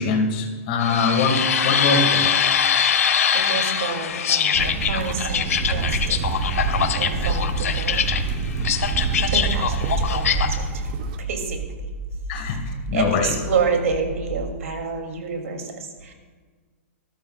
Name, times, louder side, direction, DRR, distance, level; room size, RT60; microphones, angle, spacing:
voice 1, 0.0-2.4 9.1-9.3 12.3-13.3, left 4 dB, 35° left, 4 dB, 1.6 m, -23 dB
sound 1, 0.8-10.6, left 8 dB, 90° left, 1.1 m, -23 dB
voice 2, 3.3-6.2 7.0-8.2 9.3-11.6 12.4-12.6 12.9-16.1, right 5 dB, 75° right, 3 dB, 2.6 m, -28 dB
sound 2, 4.5-11.2, right 4 dB, 40° right, 0.9 m, -27 dB
sound 3, 7.2-14.6, right 1 dB, 15° left, 4.3 m, -33 dB
20.0 x 13.5 x 2.4 m, 1.5 s
hypercardioid pair, 165°, 8 cm